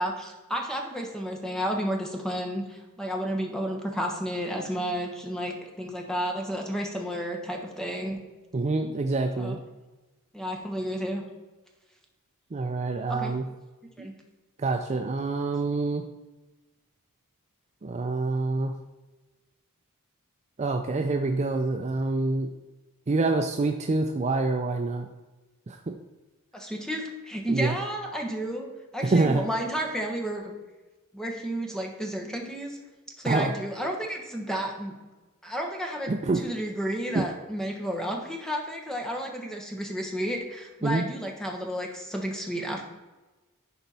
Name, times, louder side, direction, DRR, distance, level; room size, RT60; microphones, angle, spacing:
voice 1, 0.0-8.2 9.4-9.6 10.3-11.2 13.1-13.3 14.0-14.1 26.5-30.5 31.1-32.8 33.2-34.9 35.4-42.8, equal, ahead, 1 dB, 1.2 m, -32 dB
voice 2, 8.5-9.6 12.5-13.4 14.0-14.1 14.6-16.0 17.8-18.7 20.6-22.5 23.1-25.1 25.7-25.8 27.5-27.7 29.1-29.4 33.3-33.5 36.1-36.4 37.1-37.2 40.8-41.0, right 3 dB, 30° right, 4 dB, 0.4 m, -26 dB
11.0 x 4.5 x 4.1 m, 1.2 s
head